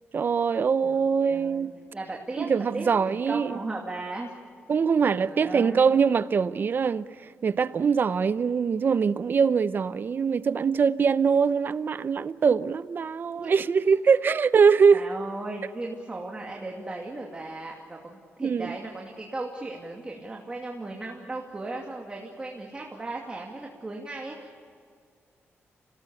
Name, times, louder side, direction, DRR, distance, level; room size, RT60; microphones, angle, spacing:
voice 1, 0.1-1.7 2.4-3.6 4.7-15.1 18.4-18.8, right 6 dB, 45° right, 0.7 m, -23 dB
voice 2, 0.8-2.5 2.7-4.3 5.1-5.8 13.3-14.3 14.9-24.6, right 2 dB, 25° right, 2.5 m, -37 dB
28.0 x 18.5 x 8.4 m
wide cardioid pair, 125°, 5 cm